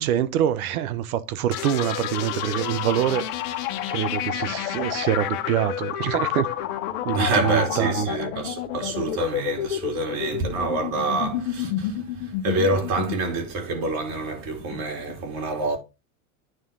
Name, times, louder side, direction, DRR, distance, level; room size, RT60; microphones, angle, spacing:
voice 1, 0.0-3.3 3.9-6.5 7.0-8.1 10.3-10.5, right 11 dB, 70° right, 1.1 m, -25 dB
sound 1, 1.5-15.1, left 12 dB, 60° left, 1.4 m, -30 dB
voice 2, 7.1-15.8, right 3 dB, 50° right, 4.0 m, -27 dB
9.4 x 3.6 x 5.4 m
hypercardioid pair, 95°, 44 cm